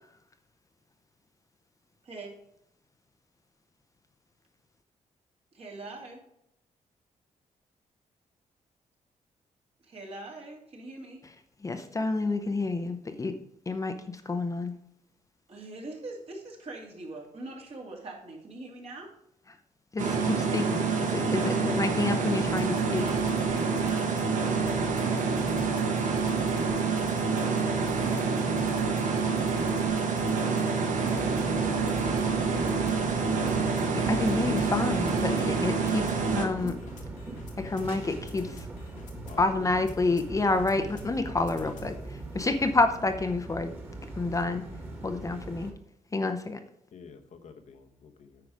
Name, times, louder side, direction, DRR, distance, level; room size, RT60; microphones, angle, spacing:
voice 1, 5.5-6.2 9.8-11.2 15.5-19.1 22.7-24.1, right 2 dB, 50° right, 0 dB, 2.6 m, -42 dB
voice 2, 11.6-13.3 13.7-13.9 14.2-14.7 19.9-23.1 33.9-36.7 37.6-38.7 39.4-43.7 44.2-44.6 45.0-45.7 46.1-46.6, left 3 dB, 25° left, 7 dB, 0.7 m, -29 dB
sound 1, 20.0-36.5, right 5 dB, 80° right, 1.4 m, -27 dB
sound 2, 22.4-42.0, left 1 dB, 85° left, 1.8 m, -46 dB
sound 3, 31.1-45.7, right 2 dB, 15° right, 1.8 m, -40 dB
voice 3, 32.2-32.5 39.3-39.4 46.9-48.4, left 6 dB, 65° left, 5 dB, 1.1 m, -50 dB
9.4 x 4.8 x 4.9 m, 0.78 s
cardioid pair, 105°, 13 cm